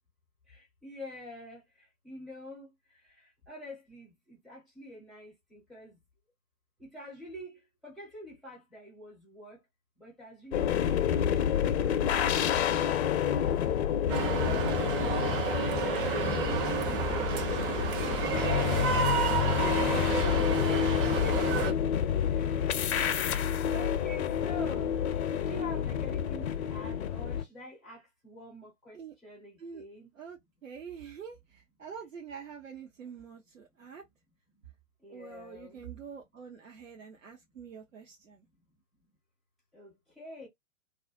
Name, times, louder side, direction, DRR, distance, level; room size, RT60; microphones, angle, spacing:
voice 1, 0.5-2.7 3.2-6.0 6.8-9.6 10.0-11.0 15.5-15.9 16.3-17.0 22.3-23.4 23.7-25.0 25.3-30.1 35.0-35.8 39.7-40.5, left 1 dB, ahead, 0.3 m, -47 dB
sound 1, 10.5-27.4, left 9 dB, 55° left, 0.5 m, -29 dB
sound 2, 14.1-21.7, right 5 dB, 40° right, 0.7 m, -31 dB
voice 2, 30.1-34.0 35.1-38.5, right 7 dB, 75° right, 0.8 m, -46 dB
2.4 x 2.1 x 2.4 m
figure-of-eight pair, 110°, 40 cm